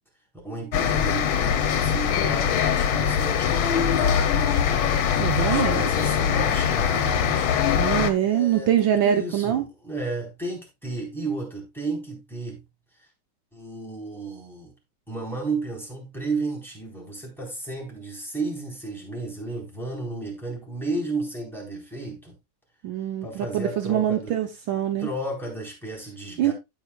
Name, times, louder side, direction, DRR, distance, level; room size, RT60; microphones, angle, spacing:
voice 1, 0.4-4.6 5.4-7.5 8.2-12.6 13.5-14.7 15.1-22.3 23.2-24.4 25.0-26.5, right 2 dB, ahead, 4.0 m, -33 dB
sound 1, 0.7-8.1, left 8 dB, 75° left, 1.7 m, -22 dB
voice 2, 5.2-5.8 7.8-9.6 22.8-25.1 26.4-26.5, right 10 dB, 70° right, 1.6 m, -24 dB
16.0 x 5.6 x 2.3 m
omnidirectional pair, 2.3 m